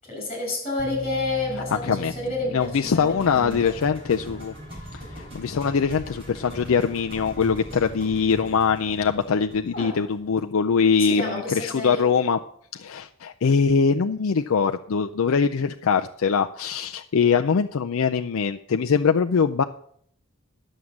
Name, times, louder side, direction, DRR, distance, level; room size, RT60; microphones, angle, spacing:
voice 1, 0.1-3.7 9.7-10.0 11.0-12.1, left 2 dB, 30° left, 1 dB, 5.6 m, -30 dB
sound 1, 0.8-9.7, equal, ahead, 1.5 m, -43 dB
voice 2, 2.5-4.5 4.9-12.4 12.7-19.6, left 6 dB, 70° left, 6 dB, 0.4 m, -22 dB
sound 2, 2.6-10.7, equal, 25° right, 4.4 m, -41 dB
11.0 x 6.4 x 7.2 m, 0.65 s
head